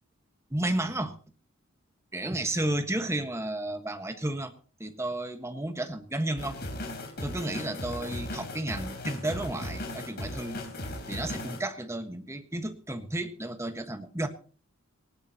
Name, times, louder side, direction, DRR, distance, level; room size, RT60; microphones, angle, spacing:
voice 1, 0.5-1.1 2.1-4.5 4.8-6.6 7.2-10.6 11.1-14.3, right 1 dB, 15° right, 7 dB, 1.3 m, -32 dB
sound 1, 6.4-11.6, left 1 dB, 50° left, 3.7 m, -37 dB
19.0 x 18.5 x 2.9 m, 0.41 s
head